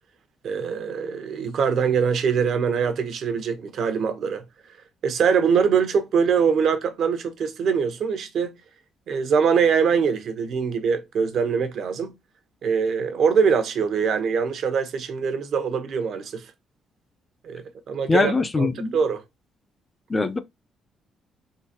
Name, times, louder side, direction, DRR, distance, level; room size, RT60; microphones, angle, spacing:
voice 1, 0.4-4.4 5.0-8.5 9.1-12.1 12.6-16.5 17.4-19.2, right 6 dB, 70° right, 0.8 m, -23 dB
voice 2, 18.1-19.0 20.1-20.4, left 3 dB, 25° left, 0.4 m, -22 dB
3.8 x 2.5 x 2.7 m
cardioid pair, 90°, 0 cm